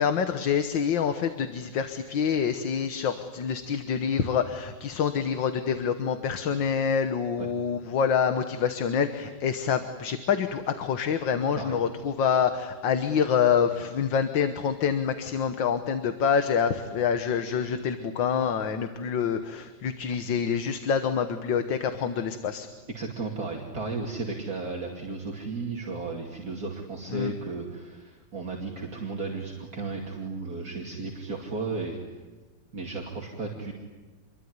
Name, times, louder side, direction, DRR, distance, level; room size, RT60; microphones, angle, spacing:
voice 1, 0.0-22.7 27.1-27.3, left 7 dB, 75° left, 8 dB, 1.9 m, -26 dB
voice 2, 22.9-32.0 32.7-33.7, right 3 dB, 50° right, -1 dB, 3.1 m, -34 dB
27.5 x 22.5 x 9.6 m, 1.3 s
omnidirectional pair, 2.1 m